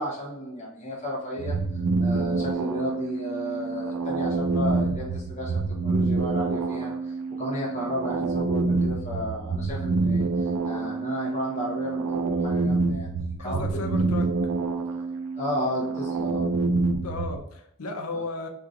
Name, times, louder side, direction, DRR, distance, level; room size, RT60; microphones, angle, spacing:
voice 1, 0.0-13.1 13.4-13.7 15.4-16.5 18.1-18.2, equal, 30° left, 0.8 m, -33 dB
sound 1, 1.4-17.4, right 3 dB, 80° right, 0.4 m, -27 dB
voice 2, 13.4-14.2 17.0-18.5, left 3 dB, 90° left, 0.6 m, -34 dB
2.8 x 2.4 x 3.6 m
head